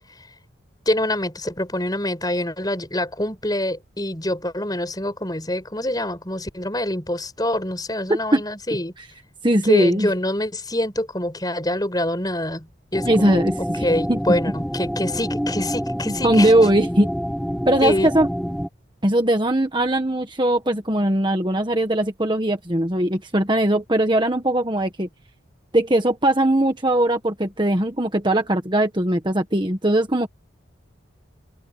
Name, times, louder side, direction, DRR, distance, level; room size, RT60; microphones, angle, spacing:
voice 1, 0.9-8.9 9.6-13.4 13.8-16.5 17.8-18.1, left 1 dB, 20° left, 5.5 m, -25 dB
voice 2, 8.1-8.4 9.0-9.1 9.4-10.1 13.0-13.8 14.1-14.2 16.1-17.1 17.7-18.3 19.0-25.1 25.7-30.3, right 1 dB, 25° right, 1.6 m, -20 dB
sound 1, 12.9-18.7, equal, ahead, 1.3 m, -27 dB
head